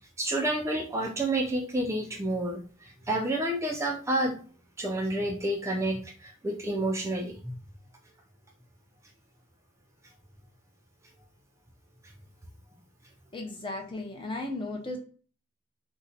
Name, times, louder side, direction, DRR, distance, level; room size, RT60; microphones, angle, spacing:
voice 1, 0.2-4.4 4.8-7.6, right 1 dB, 15° right, 1 dB, 0.4 m, -29 dB
voice 2, 13.3-15.0, left 2 dB, 25° left, 2 dB, 0.6 m, -35 dB
2.6 x 2.2 x 4.0 m, 0.40 s
head